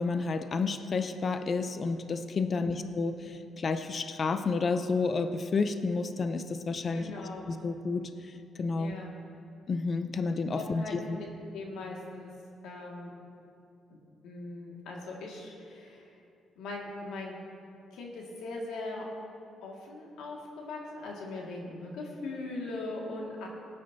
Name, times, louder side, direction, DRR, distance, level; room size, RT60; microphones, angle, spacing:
voice 1, 0.0-7.1 7.5-8.9 9.7-10.8 11.1-11.2, left 4 dB, 45° left, 9 dB, 0.6 m, -30 dB
voice 2, 2.5-2.9 6.9-7.5 8.8-9.1 10.6-11.3 11.5-12.3 12.6-13.1 13.9-14.0 14.2-16.1 16.6-17.3 17.9-19.0 19.6-23.5, left 2 dB, 85° left, -2 dB, 2.1 m, -40 dB
19.0 x 9.8 x 2.8 m, 2.6 s
cardioid pair, 90°, 0 cm